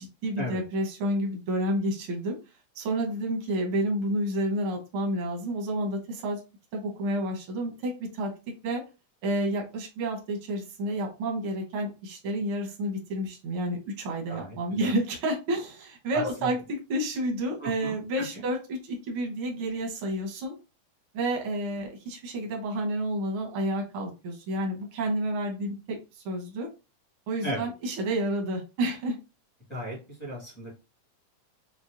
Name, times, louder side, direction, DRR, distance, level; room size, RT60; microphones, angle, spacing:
voice 1, 0.0-2.4 2.7-6.4 6.7-8.3 8.6-8.8 9.2-20.5 21.1-26.7 27.3-29.2, right 1 dB, 75° right, 2 dB, 1.2 m, -30 dB
voice 2, 14.3-14.9 16.1-16.5 17.6-18.5 27.4-27.6 29.7-30.7, equal, 15° left, -5 dB, 0.3 m, -36 dB
5.8 x 2.1 x 2.5 m, 0.30 s
omnidirectional pair, 3.5 m